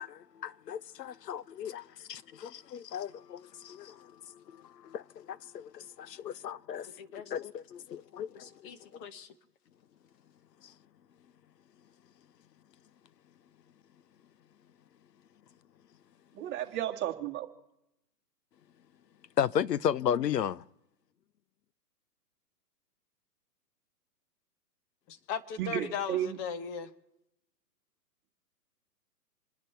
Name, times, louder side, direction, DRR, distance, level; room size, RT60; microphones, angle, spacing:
voice 1, 0.0-6.9 7.3-9.0 19.4-20.6, left 9 dB, 80° left, 0.8 m, -35 dB
voice 2, 6.8-7.3 8.3-9.3 25.1-26.9, left 7 dB, 20° left, 1.0 m, -39 dB
voice 3, 16.3-17.5 25.6-26.4, right 11 dB, 20° right, 1.9 m, -33 dB
28.0 x 10.5 x 4.5 m
hypercardioid pair, 140°, 48 cm